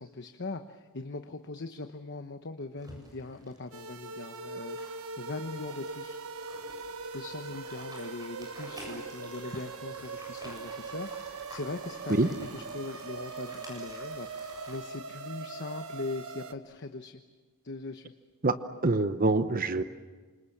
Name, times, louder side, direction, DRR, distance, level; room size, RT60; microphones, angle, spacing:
voice 1, 0.0-6.2 7.1-17.2 17.6-18.1, left 3 dB, 55° left, 7 dB, 1.0 m, -40 dB
sound 1, 2.8-14.8, equal, 20° right, 7.7 m, -50 dB
sound 2, 3.7-16.5, right 4 dB, 85° right, 1.4 m, -41 dB
voice 2, 18.8-19.8, right 2 dB, 40° right, 10 dB, 0.9 m, -25 dB
28.5 x 26.5 x 7.3 m, 1.4 s
head